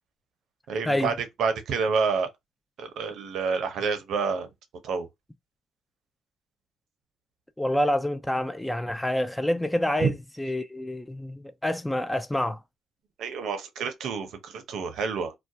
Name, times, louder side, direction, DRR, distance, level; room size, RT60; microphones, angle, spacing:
voice 1, 0.7-2.3 2.8-4.5 4.8-5.1 10.0-10.1 13.2-15.3, right 5 dB, 75° right, 0.6 m, -28 dB
voice 2, 7.6-12.6, left 1 dB, 10° left, 0.3 m, -27 dB
2.3 x 2.2 x 2.6 m
cardioid pair, 90°, 0 cm